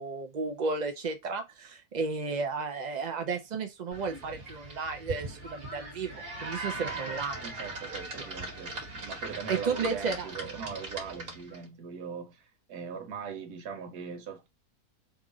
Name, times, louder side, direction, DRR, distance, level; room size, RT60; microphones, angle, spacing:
voice 1, 0.0-7.3 9.5-10.3, right 4 dB, 70° right, 0.4 m, -33 dB
sound 1, 3.9-11.6, right 2 dB, 45° right, 1.2 m, -40 dB
voice 2, 6.7-14.5, right 6 dB, 90° right, 1.4 m, -41 dB
2.9 x 2.5 x 3.8 m
omnidirectional pair, 1.6 m